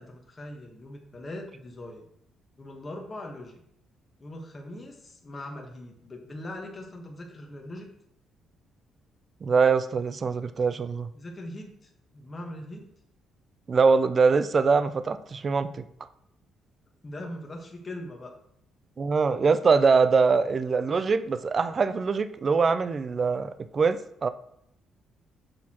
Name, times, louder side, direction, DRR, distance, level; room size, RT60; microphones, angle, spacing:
voice 1, 0.0-2.0 2.6-3.6 4.2-7.9 11.1-12.9 17.0-18.3, left 1 dB, 20° left, 1 dB, 1.2 m, -41 dB
voice 2, 9.4-11.1 13.7-15.7 19.0-24.3, right 5 dB, 30° right, 12 dB, 0.4 m, -23 dB
8.3 x 6.4 x 2.9 m, 0.72 s
cardioid pair, 160°, 0 cm